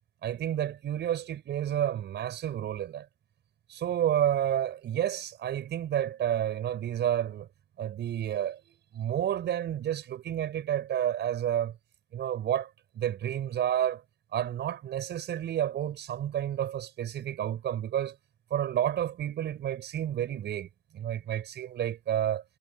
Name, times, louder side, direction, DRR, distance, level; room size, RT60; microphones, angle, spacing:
voice 1, 0.2-3.1 3.7-7.5 7.8-8.6 8.9-11.7 12.1-14.0 14.3-18.2 18.5-22.4, right 10 dB, 80° right, 5.5 m, -30 dB
supercardioid pair, 45°, 18 cm